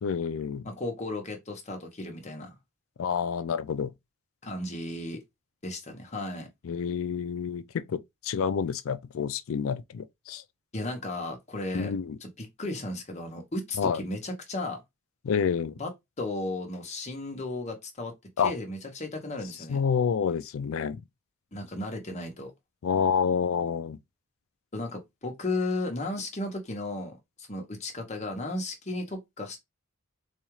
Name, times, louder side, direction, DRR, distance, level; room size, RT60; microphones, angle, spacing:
voice 1, 0.0-0.7 3.0-3.9 6.6-10.4 11.7-12.2 13.8-14.0 15.2-15.8 18.4-18.5 19.7-21.0 22.8-24.0, left 6 dB, 65° left, 0.4 m, -28 dB
voice 2, 0.6-2.6 4.4-5.2 5.6-6.5 10.7-11.9 12.2-14.8 15.8-15.9 16.2-18.1 18.4-19.8 21.5-22.5 24.7-29.6, left 2 dB, 30° left, 0.9 m, -34 dB
4.1 x 2.4 x 3.0 m
head